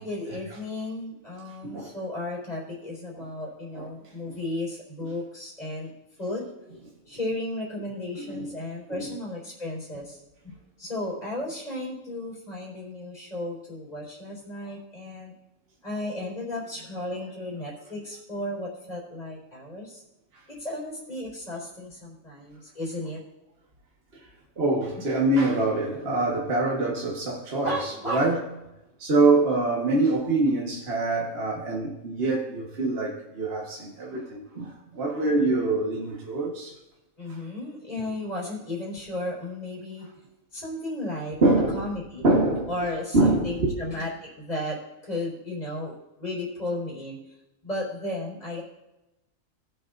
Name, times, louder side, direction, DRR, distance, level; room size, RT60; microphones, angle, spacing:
voice 1, 0.0-5.9 6.2-6.5 7.1-15.3 15.8-20.0 20.5-23.2 27.6-28.3 37.2-40.1 40.5-41.4 41.7-42.3 42.7-47.3 47.6-48.6, left 1 dB, 30° left, 4.4 m, -34 dB
voice 2, 8.2-8.5 8.9-9.1 24.6-28.4 29.0-36.7 41.4-41.9 42.2-42.7 43.1-43.7, right 2 dB, 45° right, 1.7 m, -24 dB
20.5 x 7.8 x 2.6 m
omnidirectional pair, 1.4 m